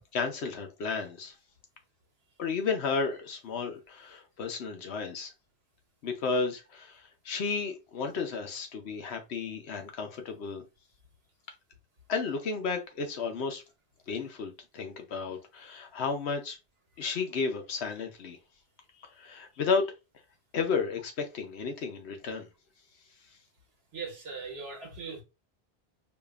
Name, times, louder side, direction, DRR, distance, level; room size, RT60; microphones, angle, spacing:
voice 1, 0.1-1.3 2.4-5.3 6.0-10.6 12.1-13.6 14.1-16.6 17.0-18.4 19.0-19.9 20.5-22.5, left 5 dB, 85° left, 1.1 m, -33 dB
voice 2, 23.9-25.2, right 4 dB, 80° right, 1.4 m, -39 dB
5.0 x 2.5 x 2.4 m
omnidirectional pair, 1.1 m